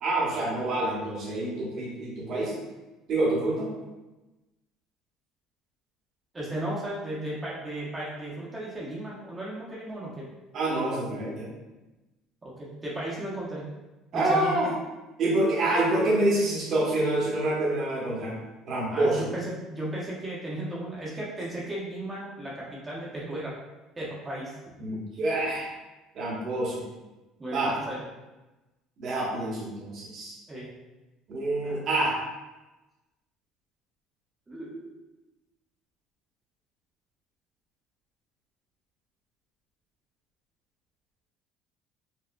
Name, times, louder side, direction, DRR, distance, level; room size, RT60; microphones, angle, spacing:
voice 1, 0.0-2.5 3.1-3.7 10.5-11.5 14.1-14.7 15.2-18.3 18.7-19.2 24.8-25.7 26.1-26.8 27.5-27.7 29.0-30.4 31.3-32.1, right 2 dB, 55° right, -4 dB, 1.1 m, -27 dB
voice 2, 6.3-10.3 12.4-13.7 14.1-14.7 18.9-23.5 24.0-24.6 27.4-28.0 30.5-30.7 31.6-31.9 34.5-35.0, right 1 dB, 20° right, -6 dB, 0.8 m, -35 dB
4.7 x 2.0 x 2.2 m, 1.1 s
supercardioid pair, 105°, 0 cm